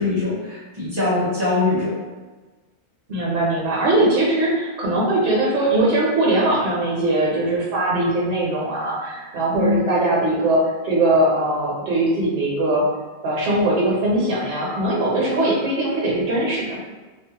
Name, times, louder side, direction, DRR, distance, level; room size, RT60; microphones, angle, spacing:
voice 1, 0.0-2.0 9.5-9.8, left 3 dB, 30° right, -8 dB, 0.5 m, -22 dB
voice 2, 3.1-12.8 13.2-16.8, right 1 dB, 60° right, -4 dB, 0.9 m, -20 dB
2.5 x 2.1 x 2.8 m, 1.3 s
omnidirectional pair, 1.1 m